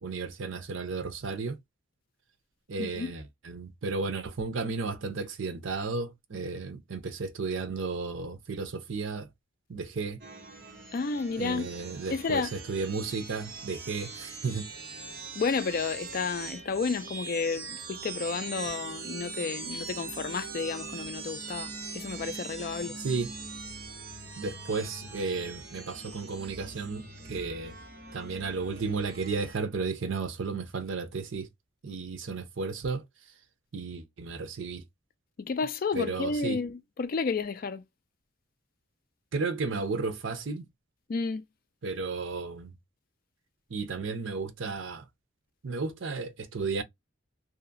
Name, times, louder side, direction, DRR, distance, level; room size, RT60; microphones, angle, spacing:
voice 1, 0.0-1.6 2.7-9.3 9.7-10.2 11.4-14.7 23.0-23.3 24.3-27.8 28.1-31.5 31.8-33.0 33.7-34.8 35.9-36.6 39.3-40.7 41.8-42.8 43.7-45.1 45.6-46.8, right 4 dB, 75° right, 0.6 m, -33 dB
voice 2, 2.8-3.1 10.9-11.7 12.1-12.5 15.3-23.0 35.4-37.8 41.1-41.4, left 4 dB, 45° left, 0.3 m, -31 dB
sound 1, 10.2-29.6, right 4 dB, 50° right, 0.9 m, -42 dB
2.8 x 2.4 x 2.5 m
head